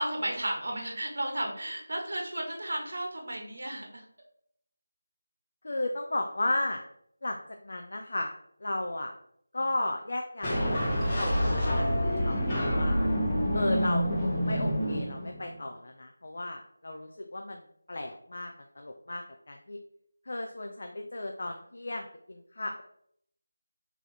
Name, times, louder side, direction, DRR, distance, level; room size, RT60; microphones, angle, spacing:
voice 1, 0.0-4.0, right 1 dB, 55° right, 1 dB, 1.1 m, -33 dB
voice 2, 5.6-6.8 7.2-8.3 8.6-9.1 9.5-13.0 13.5-17.6 17.9-19.8 20.3-22.8, left 2 dB, 50° left, 3 dB, 0.4 m, -34 dB
sound 1, 10.4-15.6, equal, 20° left, 0.9 m, -27 dB
4.2 x 2.8 x 3.2 m, 0.70 s
figure-of-eight pair, 165°, 0 cm